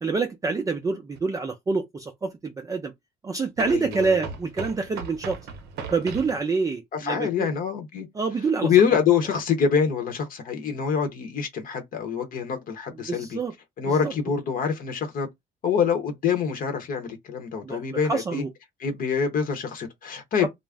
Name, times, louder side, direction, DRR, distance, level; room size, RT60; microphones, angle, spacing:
voice 1, 0.0-2.9 3.2-5.4 5.9-7.5 8.1-8.7 13.0-13.5 13.8-14.1 17.6-17.8 18.1-18.5 20.4-20.5, right 4 dB, 20° right, 0.4 m, -27 dB
sound 1, 1.1-1.2 3.6-6.4, right 6 dB, 75° right, 0.8 m, -37 dB
voice 2, 3.7-4.3 6.9-8.1 8.6-13.4 13.8-15.3 15.6-18.4 18.8-20.5, left 7 dB, 55° left, 0.8 m, -25 dB
2.4 x 2.0 x 3.4 m
cardioid pair, 110°, 17 cm